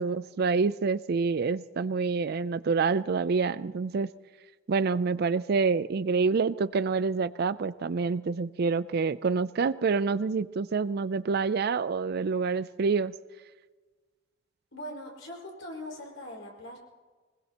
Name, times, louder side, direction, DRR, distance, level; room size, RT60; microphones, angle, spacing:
voice 1, 0.0-4.1 4.7-13.1, right 4 dB, 55° right, 16 dB, 0.4 m, -27 dB
voice 2, 14.7-16.8, left 1 dB, 85° left, -1 dB, 5.1 m, -41 dB
23.5 x 20.5 x 2.9 m, 1.4 s
head